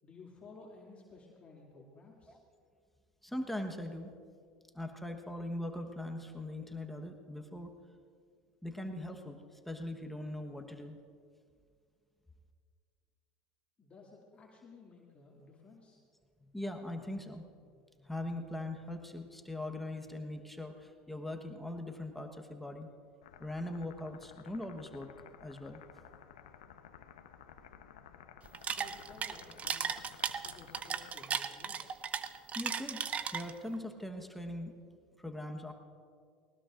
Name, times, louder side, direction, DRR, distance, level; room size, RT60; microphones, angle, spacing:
voice 1, 0.0-2.4 13.8-16.0 28.5-30.0 30.4-32.0, left 3 dB, 30° left, -4 dB, 2.5 m, -55 dB
voice 2, 3.2-4.1 4.7-7.7 8.6-11.0 16.4-17.4 18.0-22.9 23.4-25.1 25.4-25.8 32.5-33.0 33.3-34.7 35.2-35.7, left 1 dB, 5° left, 3 dB, 1.2 m, -41 dB
sound 1, 23.2-31.1, left 8 dB, 85° left, 0.9 m, -55 dB
sound 2, 28.4-33.7, right 7 dB, 35° right, 0.7 m, -36 dB
20.0 x 19.0 x 2.6 m, 2.2 s
hypercardioid pair, 85°, 4 cm